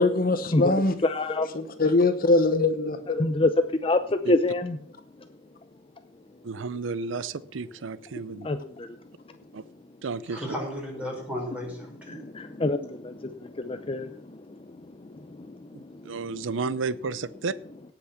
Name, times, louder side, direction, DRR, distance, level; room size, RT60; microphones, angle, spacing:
voice 1, 0.0-0.9 1.5-3.2, left 2 dB, 50° left, 10 dB, 1.0 m, -22 dB
voice 2, 0.5-1.8 3.1-4.8 8.3-9.0 12.1-16.4, left 2 dB, 30° left, 9 dB, 0.6 m, -28 dB
voice 3, 6.4-8.5 9.5-9.6 10.0-10.4 15.7-17.5, right 4 dB, 90° right, 18 dB, 0.5 m, -32 dB
voice 4, 10.3-12.5, equal, 5° right, -2 dB, 5.4 m, -35 dB
18.0 x 6.1 x 5.7 m, 0.64 s
head